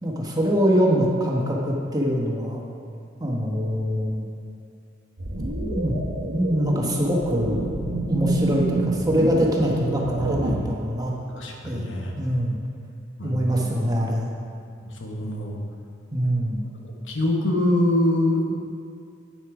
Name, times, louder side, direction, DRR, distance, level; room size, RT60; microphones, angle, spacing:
voice 1, 0.0-2.6 3.2-4.3 5.4-6.0 6.3-7.6 8.1-11.1 11.6-12.6 13.2-14.3 16.1-16.7, equal, 20° right, -2 dB, 1.3 m, -24 dB
sound 1, 5.2-10.5, right 2 dB, 80° right, 1.2 m, -28 dB
voice 2, 11.4-12.1 13.2-13.7 14.8-15.6 17.1-18.4, left 1 dB, 80° left, 0 dB, 1.4 m, -24 dB
8.8 x 8.2 x 5.0 m, 2.4 s
head